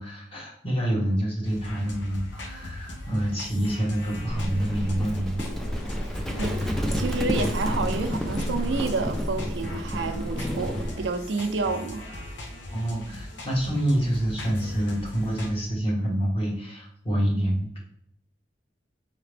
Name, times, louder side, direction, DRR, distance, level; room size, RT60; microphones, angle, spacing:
voice 1, 0.0-5.4 12.7-17.8, right 1 dB, 30° left, 1.2 m, -27 dB
sound 1, 1.4-15.5, left 1 dB, 90° left, 0.9 m, -38 dB
Livestock farm animals working animals, 4.3-10.9, equal, ahead, 0.5 m, -30 dB
voice 2, 6.4-12.0, right 3 dB, 80° right, 0.5 m, -29 dB
4.9 x 2.9 x 3.3 m
head